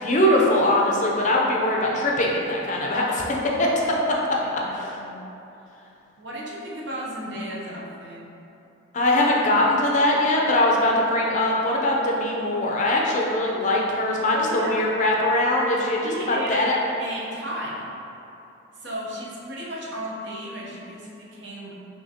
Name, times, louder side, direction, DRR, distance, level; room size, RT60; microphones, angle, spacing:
voice 1, 0.0-4.0 4.8-4.9 8.9-16.7, left 1 dB, 40° left, -2 dB, 0.5 m, -22 dB
voice 2, 4.5-5.2 6.2-8.2 14.3-14.8 16.0-16.7 17.0-17.9 18.7-21.8, equal, 65° right, -5 dB, 0.8 m, -34 dB
5.8 x 2.9 x 2.8 m, 2.9 s
head